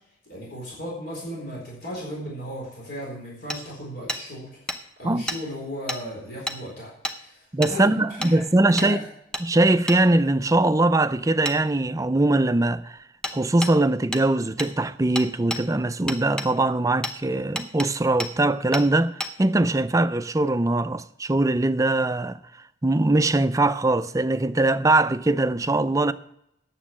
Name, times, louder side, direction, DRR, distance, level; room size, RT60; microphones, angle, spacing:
voice 1, 0.3-4.5 5.0-8.4 8.7-9.0, equal, 60° left, 4.3 m, -36 dB
Hammer, 3.5-3.6 4.1-4.2 4.7-4.8 5.3-5.4 5.9-6.0 6.5-6.6 7.0-7.2 7.6-7.8 8.2-8.3 8.8-8.9 9.3-9.5 9.9-10.0 11.5-11.6 13.2-13.4 13.6-13.7 14.1-14.3 14.6-14.7 15.2-15.6 16.1-16.5 17.0-17.2 17.6-17.9 18.2-18.3 18.7-18.9 19.2-19.3, equal, 5° left, 0.8 m, -30 dB
voice 2, 7.5-9.0 9.4-13.0 13.3-22.4 22.8-26.1, right 2 dB, 20° right, 0.4 m, -21 dB
9.5 x 7.2 x 7.2 m
head